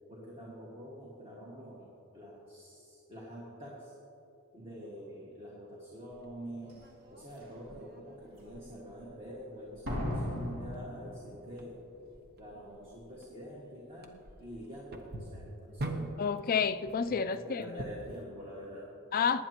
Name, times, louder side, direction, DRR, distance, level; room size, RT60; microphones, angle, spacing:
voice 1, 0.1-3.9 4.5-11.8 12.4-16.1 17.0-19.0, equal, 25° right, -5 dB, 1.8 m, -46 dB
sound 1, 6.1-18.2, right 1 dB, 45° right, 1.0 m, -46 dB
Slam, 6.7-6.8 7.4-7.8 9.8-11.7 12.0-12.1, left 1 dB, 75° right, 2.7 m, -37 dB
voice 2, 16.2-17.8 19.1-19.4, left 6 dB, 40° left, 12 dB, 0.4 m, -30 dB
19.0 x 10.0 x 2.9 m, 2.8 s
head